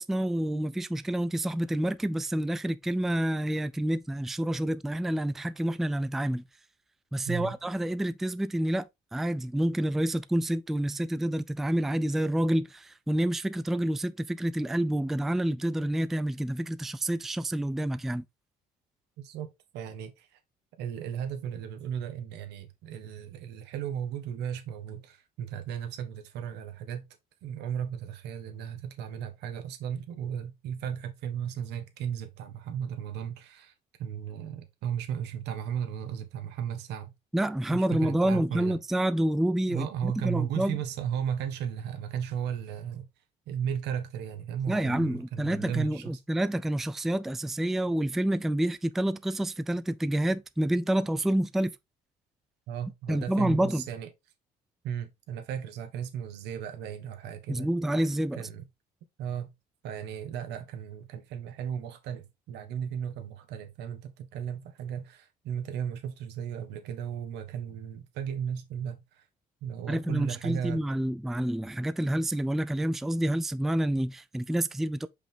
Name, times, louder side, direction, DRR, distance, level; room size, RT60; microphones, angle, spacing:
voice 1, 0.0-6.4 7.1-18.2 37.3-40.8 44.7-51.8 53.1-53.8 57.5-58.5 69.9-75.1, right 1 dB, ahead, 0.3 m, -28 dB
voice 2, 7.3-7.6 19.2-20.4 20.8-27.0 27.4-33.7 34.0-37.1 37.7-38.8 39.7-43.1 43.5-46.2 52.7-54.1 54.8-57.7 58.3-58.7 59.2-59.5 59.8-69.2 69.6-70.9, right 8 dB, 80° right, 1.4 m, -35 dB
5.7 x 5.1 x 3.3 m
cardioid pair, 110°, 17 cm